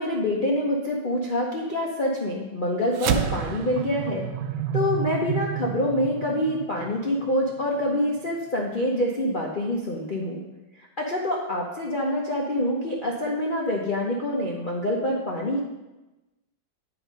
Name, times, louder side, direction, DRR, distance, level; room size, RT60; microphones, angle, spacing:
voice 1, 0.0-4.3 4.7-10.4 11.0-15.6, left 1 dB, 55° left, -2 dB, 0.5 m, -26 dB
sound 1, 2.9-7.6, right 10 dB, 75° right, 1.0 m, -30 dB
9.1 x 4.6 x 5.1 m, 1.1 s
omnidirectional pair, 2.1 m